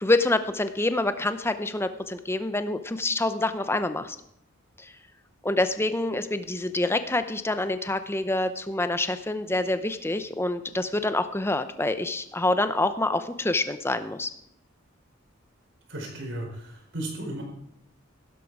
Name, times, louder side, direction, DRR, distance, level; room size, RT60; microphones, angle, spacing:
voice 1, 0.0-4.2 4.8-4.9 5.4-14.3, left 2 dB, 10° left, 10 dB, 0.7 m, -26 dB
voice 2, 15.9-17.4, right 1 dB, 65° right, 1 dB, 4.7 m, -35 dB
16.0 x 11.5 x 4.8 m, 0.76 s
head